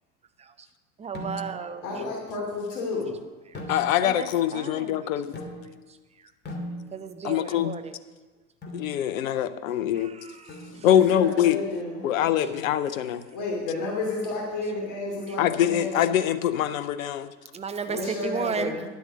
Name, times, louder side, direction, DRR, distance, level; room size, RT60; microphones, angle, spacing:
voice 1, 1.0-2.0 3.5-3.8 4.0-5.1 5.9-6.3 6.9-8.0 9.9-10.9 12.4-12.5 15.3-15.4 17.5-18.8, right 6 dB, 15° right, 9 dB, 0.8 m, -35 dB
sound 1, 1.2-1.8 3.5-4.3 5.3-5.9 6.5-7.3 8.6-8.9 10.5-11.1, left 1 dB, 25° left, 2.5 m, -39 dB
voice 2, 1.8-3.1 10.7-12.5 13.3-16.0 17.9-18.8, left 3 dB, 45° left, -2 dB, 2.7 m, -31 dB
voice 3, 3.7-5.4 7.2-7.7 8.7-10.1 10.8-11.6 12.0-13.2 15.4-17.3, left 11 dB, 65° left, 13 dB, 0.8 m, -24 dB
10.5 x 8.1 x 6.6 m, 1.2 s
figure-of-eight pair, 80°, 43 cm